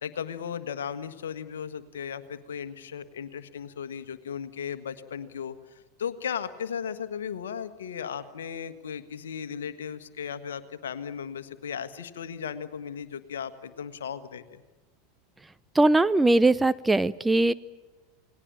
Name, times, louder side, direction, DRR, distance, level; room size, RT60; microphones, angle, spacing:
voice 1, 0.0-14.6, left 7 dB, 70° left, 12 dB, 1.6 m, -36 dB
voice 2, 15.7-17.5, right 2 dB, 10° right, 14 dB, 0.7 m, -20 dB
29.0 x 19.5 x 8.8 m, 1.2 s
figure-of-eight pair, 85°, 0 cm